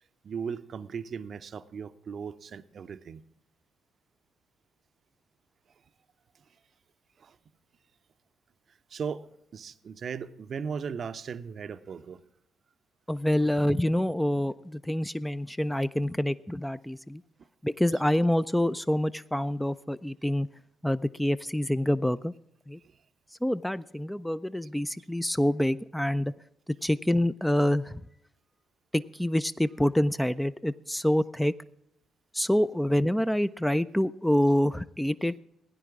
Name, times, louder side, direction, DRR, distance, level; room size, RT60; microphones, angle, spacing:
voice 1, 0.2-3.2 7.2-7.4 8.9-9.3 9.5-12.2 17.9-18.0 22.8-23.0 35.2-35.3, right 6 dB, 45° right, 13 dB, 0.6 m, -37 dB
voice 2, 13.1-17.2 17.6-20.5 20.8-22.3 22.7-22.8 23.4-26.3 26.8-28.0 28.9-31.5 32.3-35.4, left 1 dB, 5° left, 14 dB, 0.4 m, -26 dB
16.5 x 10.0 x 3.5 m, 0.76 s
figure-of-eight pair, 40°, 0 cm